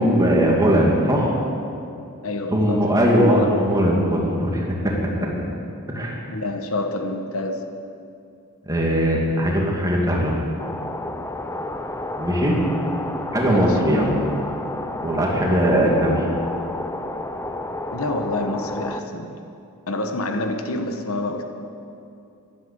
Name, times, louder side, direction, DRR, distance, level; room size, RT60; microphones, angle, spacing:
voice 1, 0.0-1.4 2.5-5.1 5.9-6.2 8.7-10.4 12.2-12.6 13.3-14.2 15.0-16.2, equal, 15° right, -2 dB, 2.5 m, -19 dB
voice 2, 2.2-3.5 6.3-7.7 13.4-13.8 17.9-19.4 19.9-21.4, left 2 dB, 70° left, 6 dB, 1.2 m, -27 dB
sound 1, 10.6-19.0, left 2 dB, 10° left, 0.6 m, -31 dB
13.0 x 11.5 x 8.5 m, 2.6 s
head